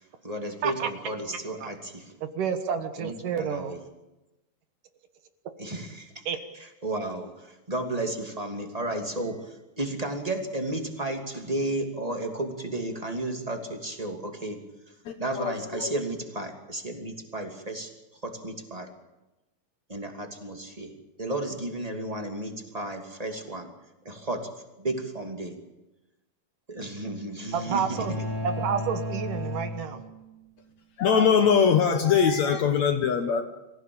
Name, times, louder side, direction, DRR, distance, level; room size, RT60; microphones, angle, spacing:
voice 1, 0.2-2.1 3.0-3.8 5.6-6.2 6.6-14.6 15.2-17.9 18.2-18.9 19.9-20.9 21.2-23.7 24.0-24.5 24.8-25.6 26.7-28.0, right 1 dB, 10° right, 4 dB, 2.1 m, -33 dB
voice 2, 1.3-1.7 2.2-3.8 6.3-6.4 27.5-28.2 28.4-30.0, right 7 dB, 65° right, 8 dB, 2.8 m, -30 dB
voice 3, 15.1-15.9 31.0-33.4, left 7 dB, 60° left, 7 dB, 2.1 m, -22 dB
sound 1, 27.9-30.5, left 1 dB, 90° right, 6.7 m, -34 dB
25.5 x 16.0 x 8.8 m, 0.98 s
omnidirectional pair, 4.2 m